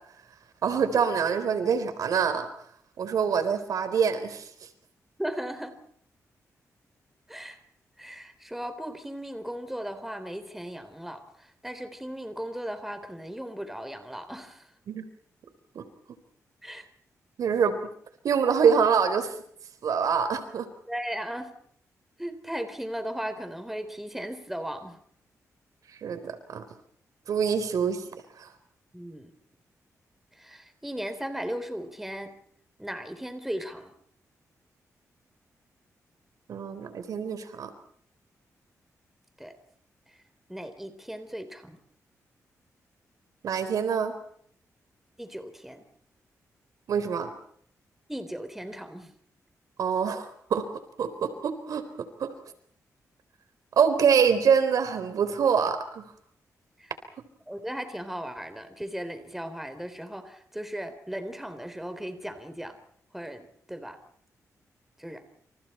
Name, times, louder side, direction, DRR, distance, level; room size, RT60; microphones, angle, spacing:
voice 1, 0.6-2.5 3.0-4.5 14.9-15.0 15.8-15.9 17.4-17.8 18.2-19.3 19.8-20.7 26.0-26.6 27.3-28.0 28.4-28.5 36.5-37.7 43.4-44.1 46.9-47.3 49.8-50.7 51.0-52.3 53.8-56.1, right 6 dB, 80° right, 10 dB, 3.9 m, -25 dB
voice 2, 5.2-5.7 7.3-7.6 8.0-14.6 16.6-16.9 20.9-21.5 22.2-25.0 28.9-29.3 30.4-32.3 32.8-33.9 39.4-39.5 40.5-41.8 45.2-45.8 48.1-49.1 56.8-56.9 57.5-62.8 63.1-63.4 63.7-64.0 65.0-65.2, equal, 5° right, 9 dB, 3.8 m, -37 dB
29.0 x 28.0 x 4.5 m, 0.65 s
wide cardioid pair, 125°, 6 cm